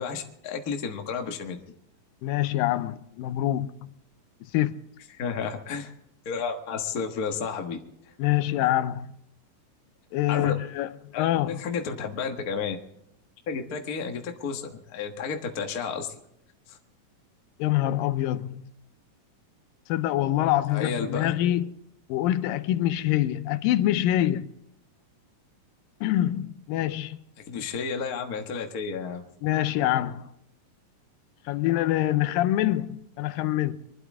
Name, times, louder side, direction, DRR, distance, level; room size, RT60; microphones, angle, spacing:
voice 1, 0.0-1.6 5.1-5.9 6.2-7.8 8.0-8.1 10.3-10.5 11.1-12.8 13.5-16.1 16.7-16.8 20.7-21.3 27.5-29.2, left 5 dB, 65° left, 0.9 m, -32 dB
voice 2, 2.2-3.9 4.4-4.8 8.2-9.1 10.1-11.6 17.6-18.7 19.9-21.7 22.1-24.5 26.0-27.2 29.4-30.3 31.5-33.8, left 13 dB, 85° left, 2.4 m, -25 dB
24.5 x 12.0 x 3.6 m
omnidirectional pair, 4.0 m